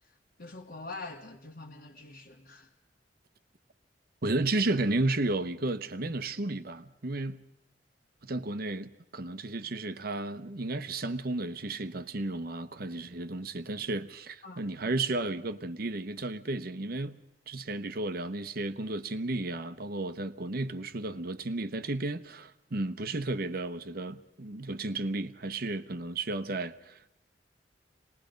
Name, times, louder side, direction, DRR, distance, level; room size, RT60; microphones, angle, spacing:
voice 1, 0.0-2.7 14.4-14.6, left 3 dB, 60° left, 1.5 m, -45 dB
voice 2, 4.2-7.4 8.2-17.2 17.5-27.1, right 2 dB, 55° right, 1.0 m, -33 dB
26.0 x 20.0 x 5.2 m
head